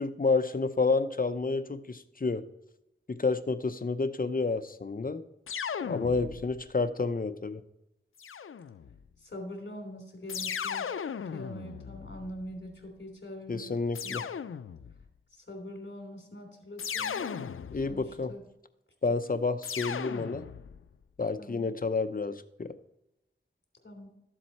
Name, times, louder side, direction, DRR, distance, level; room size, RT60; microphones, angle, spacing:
voice 1, 0.0-2.4 3.1-5.2 5.8-7.6 13.5-14.2 17.7-18.3 19.0-20.4 21.2-22.7, left 4 dB, 45° left, 11 dB, 0.7 m, -30 dB
sound 1, 5.5-6.7 8.2-9.0 10.3-12.6 13.9-15.1 16.8-18.1 19.6-20.8, left 7 dB, 90° left, 0.4 m, -37 dB
voice 2, 9.2-10.9 11.3-13.7 14.0-14.2 15.3-17.5 17.9-18.4 21.4-21.7 23.8-24.1, equal, 60° left, 3 dB, 3.0 m, -43 dB
13.0 x 7.5 x 4.2 m, 0.89 s
wide cardioid pair, 60°, 21 cm